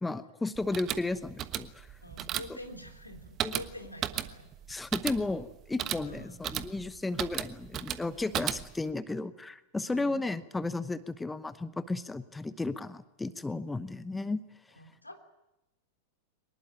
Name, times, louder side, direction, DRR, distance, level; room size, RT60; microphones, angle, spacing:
voice 1, 0.0-1.9 2.5-2.6 3.4-3.5 4.7-14.4, left 2 dB, 10° left, 14 dB, 0.9 m, -34 dB
sound 1, 0.6-8.9, right 11 dB, 30° right, 1.2 m, -36 dB
voice 2, 2.0-4.5 6.0-6.4 9.9-10.2 14.8-15.2, left 1 dB, 85° left, 4 dB, 3.4 m, -46 dB
23.5 x 20.5 x 9.1 m, 0.92 s
figure-of-eight pair, 90°, 0 cm